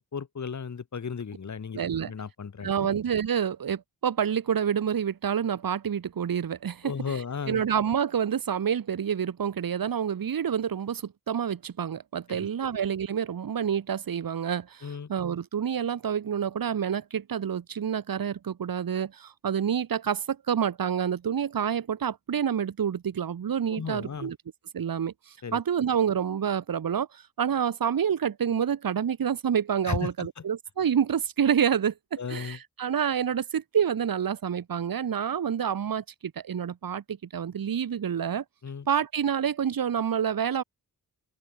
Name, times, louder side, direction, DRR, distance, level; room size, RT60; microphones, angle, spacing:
voice 1, 0.0-2.7 6.8-7.6 12.3-12.5 14.8-15.1 23.7-24.3 25.4-25.6 29.8-30.4 32.2-32.6 38.6-38.9, left 6 dB, 50° left, 4.0 m, -35 dB
voice 2, 1.7-2.1 2.6-7.2 7.5-24.4 24.7-38.4 38.9-40.6, right 8 dB, 70° right, 2.7 m, -28 dB
open air
wide cardioid pair, 115°, 36 cm